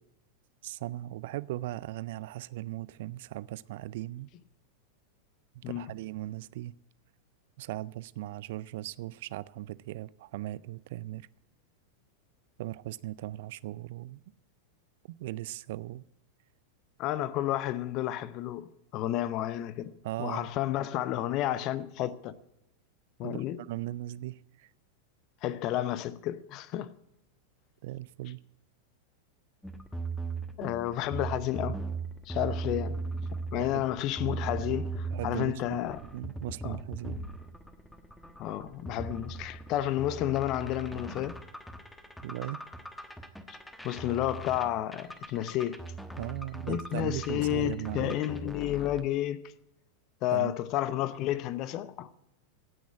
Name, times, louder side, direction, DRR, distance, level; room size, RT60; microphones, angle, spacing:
voice 1, 0.6-4.3 5.5-6.8 7.6-11.3 12.6-14.2 15.1-16.0 20.0-20.5 23.2-24.7 27.8-28.4 33.5-33.9 34.1-34.4 35.1-37.2 42.2-42.6 46.2-48.2 50.3-50.5, right 16 dB, 50° right, 0.4 m, -38 dB
voice 2, 17.0-19.9 20.2-22.3 23.2-23.6 25.4-26.9 30.6-31.8 32.3-33.0 33.5-36.0 36.6-36.8 38.4-41.4 43.5-43.6 43.8-45.9 46.7-49.5 50.2-52.1, left 13 dB, 40° left, 0.7 m, -31 dB
sound 1, 29.6-49.0, right 3 dB, 5° left, 1.1 m, -39 dB
16.5 x 6.2 x 8.5 m
figure-of-eight pair, 90°, 0 cm